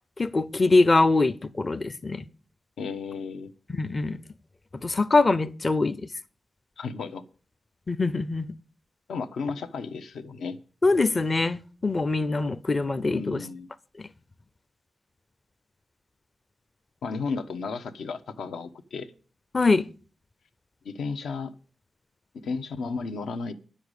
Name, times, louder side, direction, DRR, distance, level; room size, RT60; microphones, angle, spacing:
voice 1, 0.2-2.3 3.7-4.2 4.8-6.0 7.9-8.5 10.8-13.4 19.5-19.8, left 3 dB, 25° left, 0.5 m, -23 dB
voice 2, 2.8-3.5 6.8-7.2 9.1-10.6 13.1-13.7 17.0-19.1 20.8-21.5 22.4-23.5, left 4 dB, 85° left, 1.2 m, -33 dB
10.0 x 7.0 x 8.2 m
wide cardioid pair, 155°, 0 cm